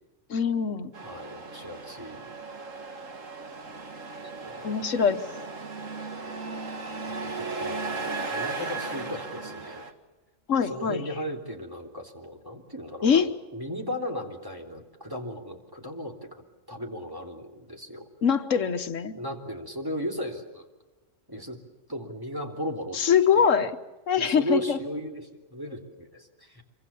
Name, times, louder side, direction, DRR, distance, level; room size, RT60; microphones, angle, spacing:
voice 1, 0.3-0.9 4.6-5.3 10.5-11.0 13.0-13.3 18.2-19.2 22.9-23.7 24.1-24.8, left 7 dB, 80° left, 9 dB, 1.5 m, -23 dB
Truck, 0.9-9.9, right 3 dB, 85° right, 2.2 m, -36 dB
voice 2, 1.0-2.2 4.4-4.8 7.2-9.9 10.7-16.4 16.7-18.1 19.1-20.7 21.3-21.6 21.9-23.1 23.3-23.5 24.2-26.6, equal, 15° right, 1 dB, 3.4 m, -36 dB
26.5 x 24.5 x 7.1 m, 1.1 s
omnidirectional pair, 1.3 m